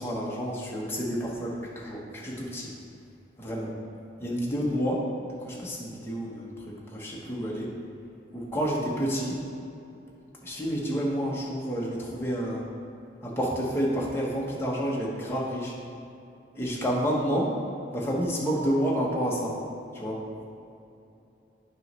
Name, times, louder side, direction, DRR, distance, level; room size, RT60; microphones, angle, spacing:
voice 1, 0.0-2.7 3.4-3.7 4.2-7.7 8.3-9.4 10.4-12.6 13.2-15.7 16.5-17.6 17.9-19.6 19.9-20.2, equal, 15° left, -4 dB, 1.0 m, -29 dB
8.8 x 3.1 x 5.4 m, 2.7 s
head